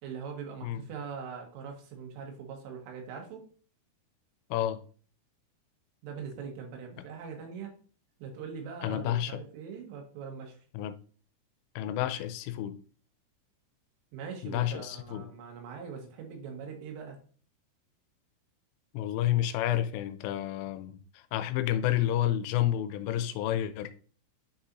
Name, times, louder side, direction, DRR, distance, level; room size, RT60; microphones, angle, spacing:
voice 1, 0.0-3.4 6.0-7.7 8.2-10.6 14.1-17.2, right 6 dB, 85° right, 3.9 m, -42 dB
voice 2, 8.8-9.4 10.7-11.0 11.8-12.8 14.4-15.2 18.9-23.9, left 12 dB, 85° left, 3.1 m, -30 dB
9.4 x 4.1 x 2.6 m
omnidirectional pair, 5.8 m